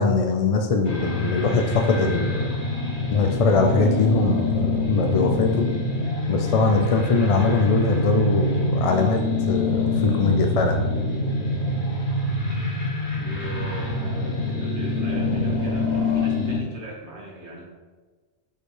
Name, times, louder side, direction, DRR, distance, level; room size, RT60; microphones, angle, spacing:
voice 1, 0.0-2.6 3.1-5.7 6.3-10.8, left 4 dB, 55° left, 3 dB, 0.4 m, -22 dB
sound 1, 0.8-16.6, left 1 dB, 75° left, 1.2 m, -25 dB
voice 2, 13.0-17.6, right 2 dB, 75° right, -4 dB, 1.9 m, -38 dB
7.7 x 4.3 x 3.2 m, 1.4 s
omnidirectional pair, 1.2 m